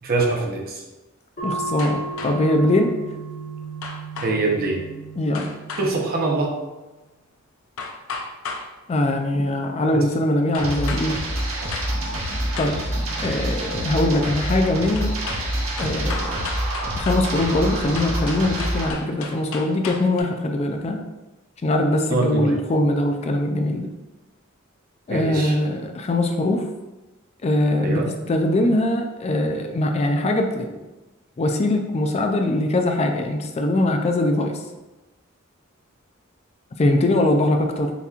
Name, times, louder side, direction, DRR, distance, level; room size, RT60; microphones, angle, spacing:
voice 1, 0.0-0.8 4.2-4.8 5.8-6.5 9.9-10.0 22.1-22.5 25.1-25.5 27.8-28.1, right 3 dB, 45° right, 0 dB, 0.8 m, -23 dB
sound 1, 1.4-6.5, right 4 dB, 45° left, 1.4 m, -34 dB
voice 2, 1.4-2.9 5.2-5.5 8.9-11.2 12.6-12.8 13.2-15.1 15.8-16.4 17.0-21.0 21.6-23.9 25.1-26.7 27.4-28.0 28.3-30.8 31.4-34.6 36.8-37.9, left 1 dB, 30° left, 4 dB, 0.3 m, -22 dB
sound 2, 1.8-2.6 3.8-4.4 5.3-5.9 7.8-8.7 10.5-11.1 11.4-11.9 12.2-12.8 15.0-15.4 15.8-17.3 17.9-20.2, left 4 dB, 85° left, 0.6 m, -34 dB
sound 3, 10.6-18.9, right 1 dB, 85° right, 1.3 m, -26 dB
6.9 x 2.9 x 2.4 m, 1.1 s
head